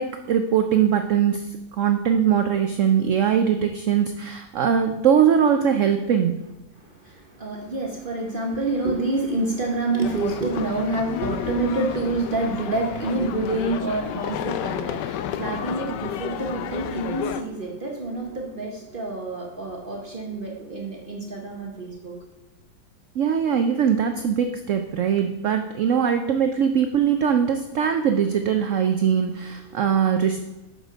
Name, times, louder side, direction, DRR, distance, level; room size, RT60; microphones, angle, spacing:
voice 1, 0.0-1.5 1.7-6.4 23.2-30.5, right 8 dB, 80° right, 7 dB, 0.6 m, -21 dB
voice 2, 7.0-22.1, right 2 dB, 40° right, 0 dB, 0.8 m, -27 dB
sound 1, 10.0-17.4, left 10 dB, 75° left, 1.2 m, -31 dB
6.7 x 6.1 x 5.0 m, 1.0 s
omnidirectional pair, 1.9 m